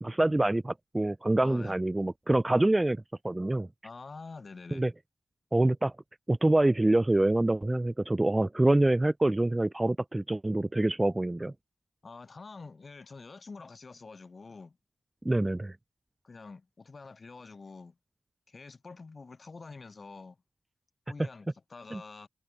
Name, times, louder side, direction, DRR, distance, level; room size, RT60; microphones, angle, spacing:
voice 1, 0.0-3.7 4.7-4.9 5.5-5.9 6.3-11.5 15.2-15.8 21.9-22.0, right 1 dB, 20° right, 0.3 m, -26 dB
voice 2, 1.4-1.8 3.8-4.9 12.0-14.8 16.2-18.0 18.5-20.4 21.1-22.3, left 4 dB, 45° left, 5.1 m, -47 dB
wide cardioid pair, 85°, 0 cm